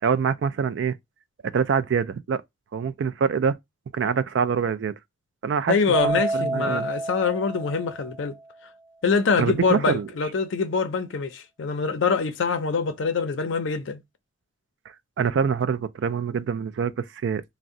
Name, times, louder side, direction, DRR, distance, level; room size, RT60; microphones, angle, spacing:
voice 1, 0.0-1.0 1.4-2.4 2.7-3.6 3.9-4.9 5.4-6.9 9.4-10.1 14.9-17.4, right 6 dB, 65° right, 0.3 m, -25 dB
voice 2, 5.7-8.3 9.0-14.0, left 5 dB, 75° left, 0.5 m, -24 dB
Keyboard (musical), 5.9-8.4, right 1 dB, 15° right, 0.7 m, -29 dB
2.5 x 2.1 x 3.6 m
head